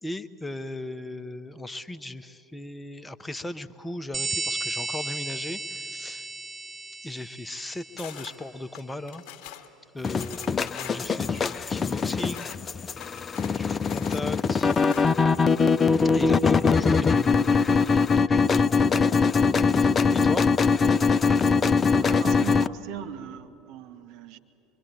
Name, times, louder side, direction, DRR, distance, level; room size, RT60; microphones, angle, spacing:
voice 1, 0.0-6.3 7.0-9.2 9.9-12.5 13.5-14.7 16.1-18.8 19.8-20.5 21.2-21.4, left 2 dB, 10° left, 11 dB, 0.9 m, -37 dB
sound 1, 4.1-8.4, right 3 dB, 20° right, 0.8 m, -34 dB
sound 2, 8.0-8.4 8.7-9.7 10.1-12.6 12.9-15.4, left 11 dB, 50° left, 1.6 m, -44 dB
sound 3, 10.0-22.7, left 5 dB, 25° left, 0.5 m, -22 dB
voice 2, 22.0-24.4, right 9 dB, 50° right, 6 dB, 1.4 m, -39 dB
25.0 x 23.5 x 9.2 m, 3.0 s
figure-of-eight pair, 70°, 0 cm